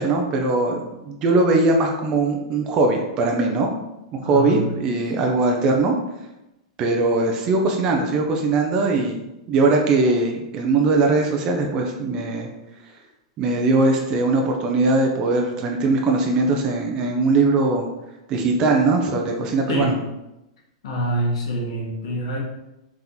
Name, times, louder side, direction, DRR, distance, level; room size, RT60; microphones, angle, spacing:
voice 1, 0.0-3.7 4.1-5.9 6.8-9.2 9.5-12.5 13.4-17.9 18.3-19.9, right 3 dB, 20° right, 2 dB, 0.4 m, -20 dB
voice 2, 4.2-4.7 19.7-20.0 20.8-22.4, right 1 dB, 60° left, -1 dB, 1.2 m, -25 dB
3.5 x 2.9 x 3.9 m, 0.94 s
supercardioid pair, 170°, 3 cm